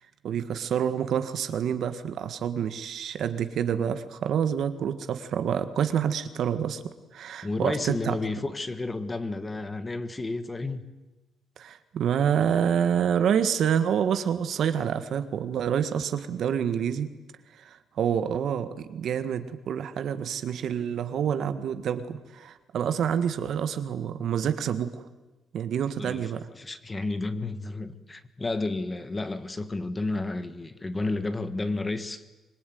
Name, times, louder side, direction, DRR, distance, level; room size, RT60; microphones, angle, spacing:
voice 1, 0.2-6.8 7.1-8.2 11.6-17.1 17.6-25.1 25.5-26.5, right 8 dB, 55° right, 10 dB, 1.7 m, -27 dB
voice 2, 7.4-10.8 26.0-26.3 26.6-32.2, left 2 dB, 15° left, 11 dB, 1.5 m, -31 dB
25.0 x 22.0 x 9.5 m, 1.1 s
cardioid pair, 145°, 0 cm